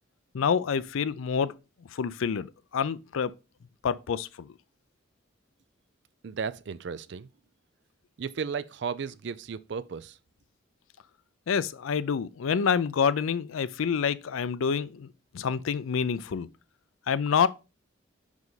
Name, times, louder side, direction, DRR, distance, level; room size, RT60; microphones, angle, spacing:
voice 1, 0.3-1.5 1.9-3.3 3.8-4.5 11.5-15.1 15.3-16.5 17.1-17.5, left 6 dB, 85° left, 0.4 m, -27 dB
voice 2, 6.2-7.3 8.2-10.2, right 6 dB, 60° right, 0.4 m, -34 dB
5.4 x 4.9 x 3.9 m
head